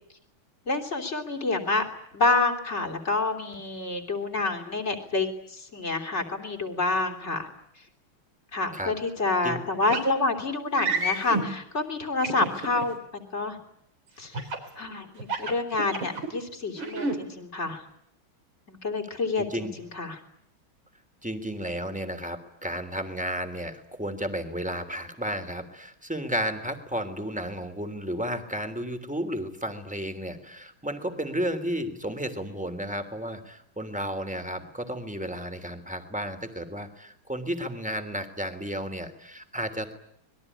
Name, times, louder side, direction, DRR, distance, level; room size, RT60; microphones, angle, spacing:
voice 1, 0.7-1.8 2.1-7.5 8.5-13.6 14.2-14.4 14.8-17.8 18.7-20.2, left 3 dB, 30° left, 4 dB, 3.6 m, -28 dB
sound 1, 9.9-10.1 10.8-11.5 12.2-12.8 14.3-14.7 15.2-16.3 16.8-17.2, right 2 dB, 70° right, 4.6 m, -29 dB
voice 2, 19.4-19.8 21.2-39.9, equal, 5° right, 7 dB, 2.9 m, -33 dB
26.5 x 21.5 x 9.9 m, 0.75 s
omnidirectional pair, 2.2 m